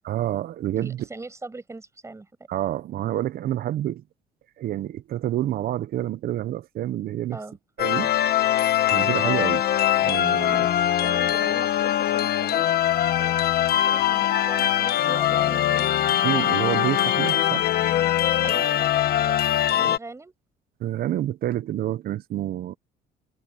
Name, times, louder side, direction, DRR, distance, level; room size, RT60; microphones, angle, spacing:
voice 1, 0.0-1.0 2.5-4.0 4.6-7.4 7.8-8.2 8.9-9.7 10.0-10.7 16.2-17.7 19.8-19.9 20.8-22.8, right 13 dB, 65° right, 0.9 m, -28 dB
voice 2, 0.8-2.3 7.3-7.6 10.5-12.8 13.2-15.9 18.4-20.3, right 3 dB, 15° right, 6.5 m, -40 dB
sound 1, 7.8-20.0, left 12 dB, 65° left, 1.3 m, -22 dB
cardioid pair, 110°, 17 cm